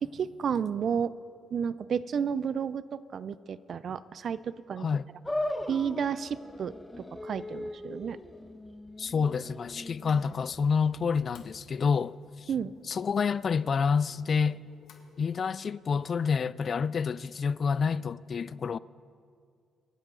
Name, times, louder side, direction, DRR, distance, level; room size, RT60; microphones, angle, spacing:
voice 1, 0.0-1.1 1.5-4.9 5.7-8.2 12.5-12.7, right 7 dB, 55° right, 0.4 m, -32 dB
sound 1, 5.2-11.7, left 1 dB, 10° left, 0.7 m, -39 dB
voice 2, 9.0-12.5 12.9-14.6 15.2-18.8, left 6 dB, 45° left, 0.3 m, -28 dB
sound 2, 10.0-15.6, left 5 dB, 75° left, 1.4 m, -59 dB
26.5 x 8.9 x 3.8 m
cardioid pair, 90°, 0 cm